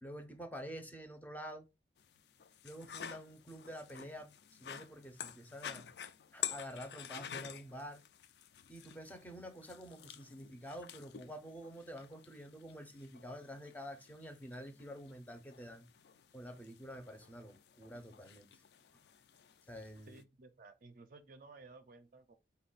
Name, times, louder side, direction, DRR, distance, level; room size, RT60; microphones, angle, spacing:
voice 1, 0.0-1.6 2.6-5.9 6.3-8.0 8.7-15.9 16.3-18.6 19.7-20.2, equal, 10° left, 0.5 m, -48 dB
sound 1, 2.0-20.2, left 9 dB, 60° left, 0.4 m, -50 dB
voice 2, 20.1-22.4, right 3 dB, 50° right, 0.4 m, -56 dB
4.3 x 2.2 x 3.8 m
head